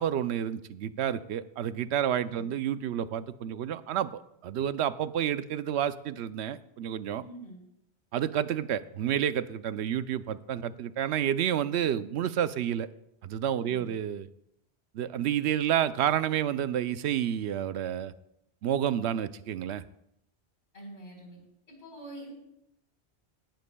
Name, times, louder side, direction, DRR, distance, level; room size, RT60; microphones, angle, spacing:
voice 1, 0.0-7.2 8.1-12.9 13.2-14.3 14.9-18.1 18.6-19.8, right 10 dB, 80° right, 13 dB, 0.8 m, -30 dB
voice 2, 7.2-7.6 13.6-14.0 20.7-21.4 21.7-22.3, right 1 dB, 90° left, -1 dB, 4.6 m, -45 dB
18.0 x 12.5 x 2.3 m, 0.79 s
omnidirectional pair, 1.1 m